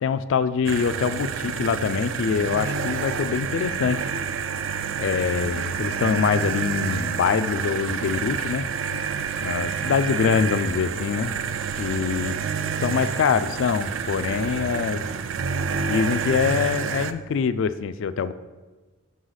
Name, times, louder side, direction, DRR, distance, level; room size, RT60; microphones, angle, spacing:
voice 1, 0.0-4.1 5.0-8.7 9.4-11.4 11.8-12.4 12.8-15.0 15.8-18.3, left 6 dB, 60° left, 14 dB, 0.3 m, -24 dB
sound 1, 0.6-17.1, right 6 dB, 65° right, 0.3 m, -28 dB
6.3 x 5.5 x 3.9 m, 1.3 s
head